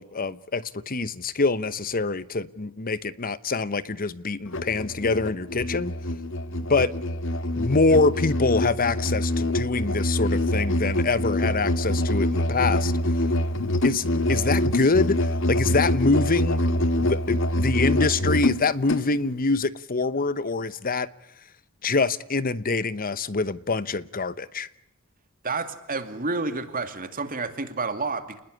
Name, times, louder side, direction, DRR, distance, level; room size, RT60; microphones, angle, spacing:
voice 1, 0.0-5.9 6.7-6.9 7.6-12.9 13.8-16.6 17.0-21.1 21.8-24.7, left 3 dB, 40° left, 1.0 m, -25 dB
Musical instrument, 4.5-19.1, left 1 dB, 60° left, 1.5 m, -25 dB
voice 2, 25.4-28.4, right 3 dB, 40° right, 2.5 m, -30 dB
29.0 x 20.5 x 10.0 m
head